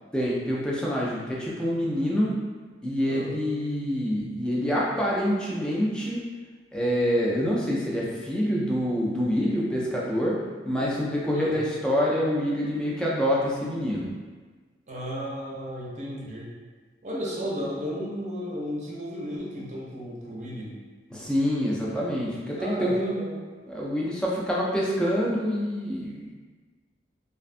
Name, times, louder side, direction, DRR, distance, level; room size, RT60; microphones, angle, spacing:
voice 1, 0.1-2.3 2.8-6.3 6.7-10.4 10.7-14.1 21.1-23.2 23.7-26.3, equal, 5° left, -5 dB, 0.3 m, -26 dB
voice 2, 14.9-16.5 17.0-20.7 22.5-23.3, equal, 40° right, -5 dB, 0.5 m, -34 dB
2.4 x 2.2 x 2.5 m, 1.4 s
head